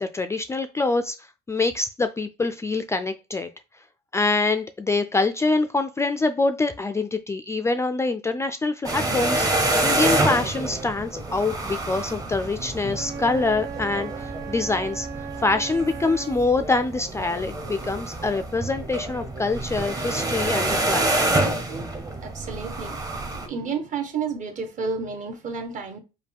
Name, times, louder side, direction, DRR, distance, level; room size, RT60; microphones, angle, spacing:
voice 1, 0.0-3.5 4.1-15.1 15.4-21.1, left 3 dB, 15° left, 0.3 m, -25 dB
sound 1, 8.8-23.5, right 2 dB, 20° right, 0.9 m, -27 dB
Wind instrument woodwind instrument, 12.9-16.5, right 6 dB, 80° right, 0.8 m, -36 dB
voice 2, 22.2-26.0, right 5 dB, 50° right, 1.2 m, -31 dB
5.1 x 2.2 x 3.5 m
cardioid pair, 110°, 17 cm